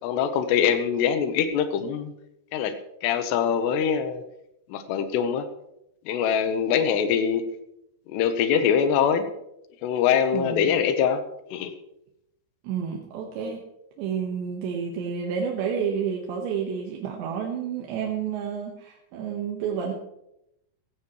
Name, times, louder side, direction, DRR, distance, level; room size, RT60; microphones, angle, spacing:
voice 1, 0.0-2.1 2.5-2.7 3.0-4.2 4.7-5.5 6.1-7.4 8.1-9.3 9.8-11.2 11.5-11.7, left 7 dB, 80° left, 8 dB, 3.1 m, -23 dB
voice 2, 10.3-10.7 12.6-13.6 14.0-19.9, right 7 dB, 85° right, 0 dB, 3.7 m, -30 dB
16.5 x 15.5 x 3.2 m, 0.82 s
omnidirectional pair, 5.0 m